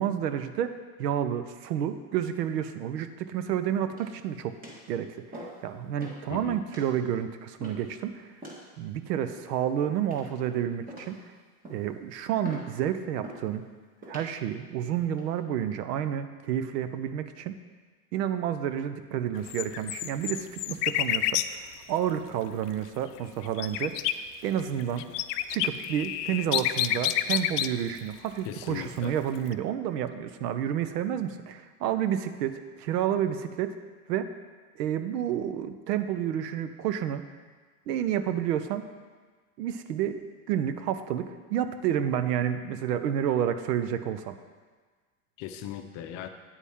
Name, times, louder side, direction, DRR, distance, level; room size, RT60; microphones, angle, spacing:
voice 1, 0.0-4.6 4.9-8.3 8.8-11.2 11.7-13.6 14.1-17.5 18.1-24.0 24.4-25.1 25.5-33.7 34.1-34.3 34.7-37.2 37.9-38.9 39.6-40.2 40.5-44.4, right 10 dB, 80° right, 10 dB, 0.8 m, -30 dB
sound 1, 3.9-4.2 4.6-4.9 5.3-5.6 6.0-6.2 6.7-6.9 7.6-7.9 8.4-8.6 9.2-9.6 10.1-10.5 10.9-11.2 11.6-11.9 12.4-12.7 13.2-13.5 14.0-14.3 14.9-15.2, right 1 dB, 15° right, 1.8 m, -43 dB
voice 2, 6.3-6.6 28.4-29.1 45.4-46.3, left 10 dB, 35° left, 7 dB, 0.6 m, -38 dB
sound 2, 19.3-21.5 23.2-24.1 24.6-27.7 28.5-28.7 29.5-29.6, left 14 dB, 75° left, 0.6 m, -28 dB
9.0 x 8.3 x 3.6 m, 1.4 s
supercardioid pair, 125°, 48 cm